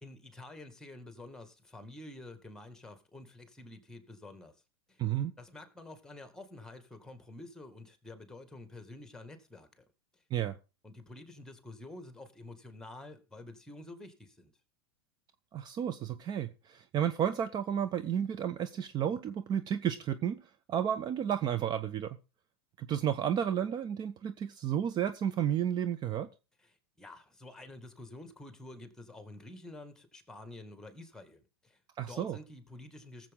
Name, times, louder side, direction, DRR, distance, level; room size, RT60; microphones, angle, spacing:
voice 1, 0.0-4.5 4.9-5.0 5.4-9.8 10.8-14.5 26.6-31.8 32.1-33.3, left 2 dB, 5° left, 2.1 m, -49 dB
voice 2, 5.0-5.3 10.3-10.5 15.5-20.4 20.7-22.2 22.8-26.3 32.0-32.4, right 9 dB, 35° right, 0.7 m, -32 dB
19.0 x 7.5 x 3.7 m
hypercardioid pair, 100°, 13 cm